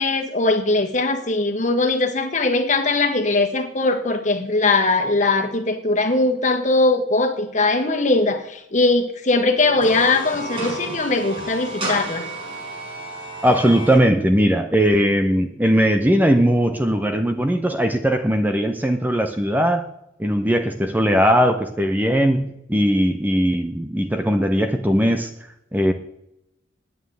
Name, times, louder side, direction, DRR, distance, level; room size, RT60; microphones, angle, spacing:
voice 1, 0.0-12.2, left 3 dB, 40° left, 4 dB, 1.7 m, -20 dB
sound 1, 9.6-14.0, right 1 dB, 30° right, 5.8 m, -31 dB
voice 2, 13.4-19.9 20.2-25.3 25.7-25.9, equal, 10° right, 7 dB, 0.7 m, -19 dB
9.5 x 9.0 x 9.5 m, 0.82 s
head